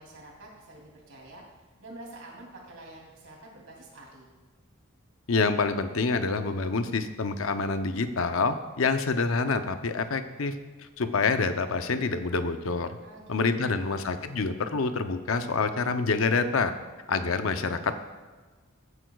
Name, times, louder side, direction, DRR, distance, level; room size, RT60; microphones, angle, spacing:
voice 1, 0.0-1.4 1.8-4.3 13.0-14.0, right 2 dB, 80° right, -1 dB, 2.9 m, -47 dB
voice 2, 5.3-10.5 11.0-12.9 13.3-16.7 17.1-18.0, left 4 dB, 70° left, 9 dB, 0.7 m, -27 dB
15.0 x 9.2 x 2.4 m, 1.3 s
head